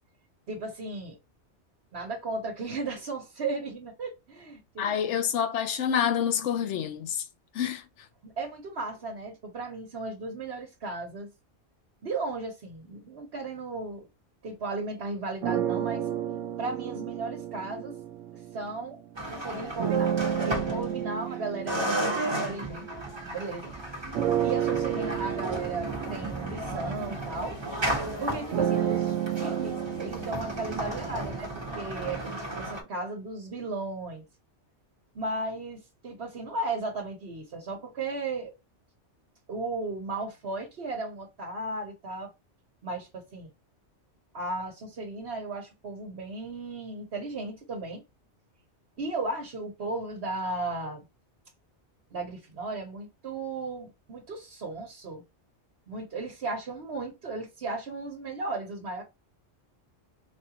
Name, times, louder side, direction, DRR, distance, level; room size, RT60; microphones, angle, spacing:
voice 1, 0.5-1.2 1.9-5.2 8.2-11.3 12.0-14.1 14.4-16.1 16.6-17.9 18.5-22.9 23.2-23.7 24.4-27.6 28.2-34.2 35.1-38.5 39.5-42.3 42.8-43.5 44.3-48.0 49.0-51.0 52.1-55.2 55.9-59.0, right 3 dB, 60° right, 1.2 m, -35 dB
voice 2, 4.8-7.2 7.5-7.8, left 8 dB, 80° left, 0.9 m, -27 dB
sound 1, 15.4-19.0 19.8-23.6 24.1-32.1, right 10 dB, 80° right, 0.9 m, -32 dB
sound 2, 19.1-21.3 21.7-32.8, right 1 dB, 25° right, 1.1 m, -34 dB
4.2 x 2.4 x 2.8 m
omnidirectional pair, 1.2 m